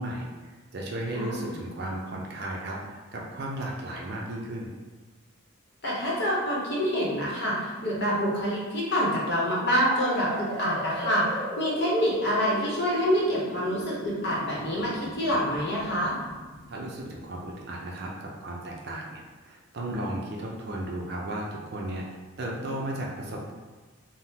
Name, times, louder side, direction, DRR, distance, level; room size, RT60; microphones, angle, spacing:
voice 1, 0.0-4.7 16.7-22.0 22.4-23.5, right 1 dB, 50° right, -2 dB, 0.5 m, -35 dB
voice 2, 1.1-1.5 5.8-11.2 11.6-16.2, equal, 55° left, -5 dB, 0.9 m, -26 dB
sound 1, 9.7-17.4, right 1 dB, 5° left, 0.5 m, -38 dB
3.6 x 2.0 x 2.8 m, 1.3 s
head